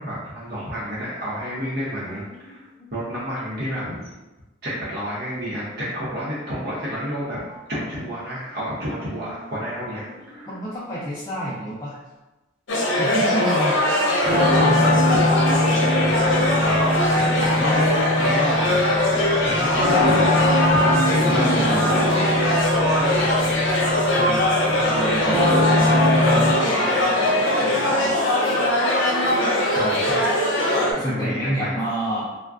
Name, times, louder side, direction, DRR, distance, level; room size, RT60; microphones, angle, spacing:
voice 1, 0.0-4.1 4.6-10.5 13.4-13.7 14.3-22.3 23.0-23.7 24.8-25.0 29.7-30.2 30.8-31.7, equal, 55° right, -8 dB, 0.7 m, -30 dB
voice 2, 2.0-3.3 9.0-9.5 10.0-12.0 13.0-13.4 14.5-15.0 21.2-22.7 24.1-28.2 31.0-32.4, right 1 dB, 20° left, -9 dB, 0.4 m, -31 dB
sound 1, 12.7-30.9, left 1 dB, 80° left, 0.7 m, -21 dB
sound 2, 14.2-26.5, left 1 dB, 85° right, 1.1 m, -22 dB
3.5 x 2.1 x 2.4 m, 1.1 s
head